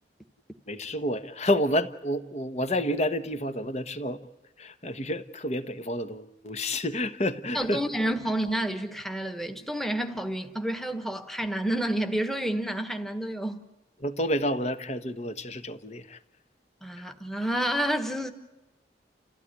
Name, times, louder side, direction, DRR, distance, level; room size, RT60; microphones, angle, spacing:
voice 1, 0.7-4.2 4.6-7.8 14.0-16.2, left 1 dB, 35° left, 1.3 m, -29 dB
voice 2, 7.5-13.6 16.8-18.3, right 1 dB, ahead, 1.4 m, -29 dB
30.0 x 16.0 x 9.9 m
head